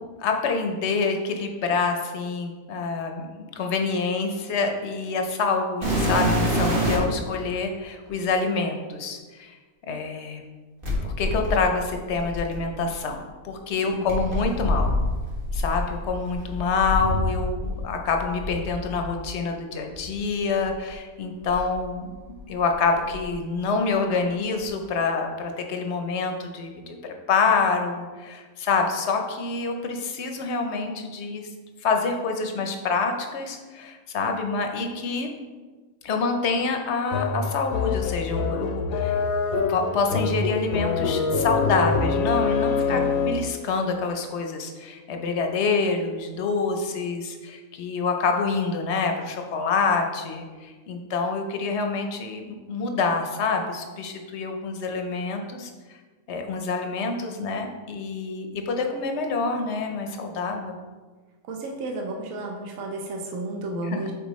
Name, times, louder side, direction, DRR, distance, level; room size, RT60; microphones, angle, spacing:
voice 1, 0.0-3.3 3.6-9.5 9.9-10.4 11.0-14.9 15.5-22.1 22.5-26.9 27.3-31.4 31.8-35.3 36.0-39.1 39.7-55.7 56.3-60.8 63.8-64.0, left 4 dB, 60° left, 4 dB, 0.8 m, -26 dB
sound 1, 5.8-7.2 8.1-8.2 10.8-12.9 14.1-17.8 18.1-19.1 19.9-20.0 20.6-20.7 21.4-22.5 22.8-23.3 24.6-24.7, left 1 dB, 40° right, 1.4 m, -27 dB
sound 2, 37.1-43.6, left 5 dB, 80° left, 1.1 m, -25 dB
voice 2, 42.8-43.1 61.5-64.1, right 2 dB, 65° right, 1 dB, 1.1 m, -32 dB
6.9 x 4.4 x 3.1 m, 1.4 s
omnidirectional pair, 1.5 m